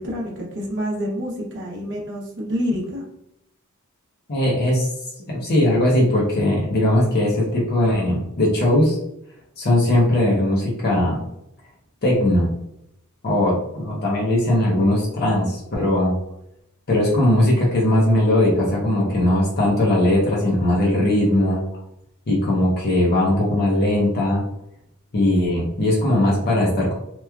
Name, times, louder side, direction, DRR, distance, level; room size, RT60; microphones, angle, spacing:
voice 1, 0.0-3.0, equal, 55° right, -3 dB, 0.7 m, -27 dB
voice 2, 4.3-4.9 5.3-9.0 9.6-11.2 12.0-12.5 13.2-16.2 16.9-21.6 22.3-24.4 25.1-27.0, left 1 dB, 45° left, -4 dB, 0.7 m, -19 dB
2.9 x 2.3 x 2.2 m, 0.80 s
head